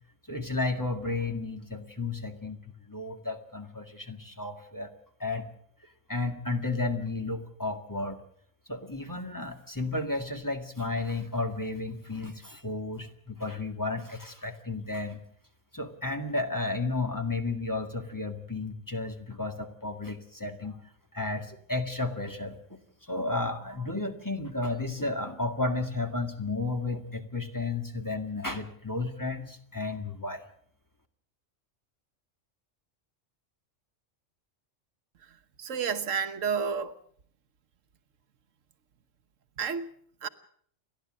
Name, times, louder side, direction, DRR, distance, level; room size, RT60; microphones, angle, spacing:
voice 1, 0.3-2.6 2.9-4.9 5.2-5.4 6.1-8.2 8.7-15.2 15.7-20.8 21.1-22.8 23.1-30.4, left 3 dB, 15° left, 1.9 m, -33 dB
voice 2, 35.6-36.9 39.6-39.9 40.2-40.3, right 6 dB, 80° right, 1.4 m, -30 dB
30.0 x 12.0 x 7.6 m
omnidirectional pair, 1.3 m